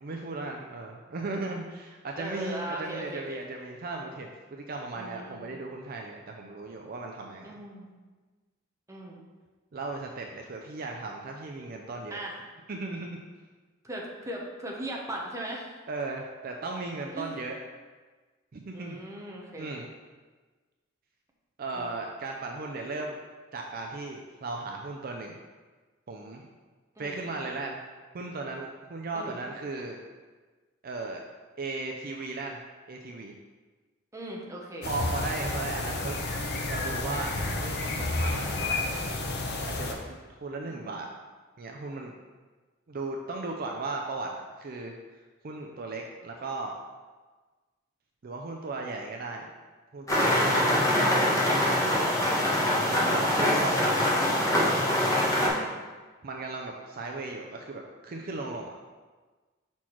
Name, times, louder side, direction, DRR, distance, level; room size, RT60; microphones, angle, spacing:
voice 1, 0.0-7.5 9.7-12.2 12.7-13.2 15.9-17.6 18.5-19.0 19.6-19.9 21.6-23.2 23.5-25.4 26.1-26.5 27.0-27.8 28.1-30.0 30.8-31.2 31.6-32.6 32.9-33.3 34.8-38.9 39.6-41.1 41.6-42.1 42.9-44.9 45.4-46.8 48.2-49.5 49.9-52.1 52.8-54.0 54.3-54.8 56.2-58.8, right 3 dB, 50° right, 1 dB, 0.5 m, -36 dB
voice 2, 2.2-3.4 4.9-5.5 7.4-7.9 8.9-9.2 12.1-12.3 13.8-15.7 17.1-17.4 18.7-19.7 21.7-21.9 27.0-27.3 29.1-29.4 34.1-34.9 40.6-41.0 52.8-53.3 55.4-55.7, right 1 dB, 15° right, -2 dB, 0.9 m, -39 dB
sound 1, 34.8-39.9, left 2 dB, 55° left, 0.8 m, -31 dB
sound 2, 50.1-55.5, left 1 dB, 15° left, 1.3 m, -24 dB
5.8 x 4.4 x 4.5 m, 1.3 s
head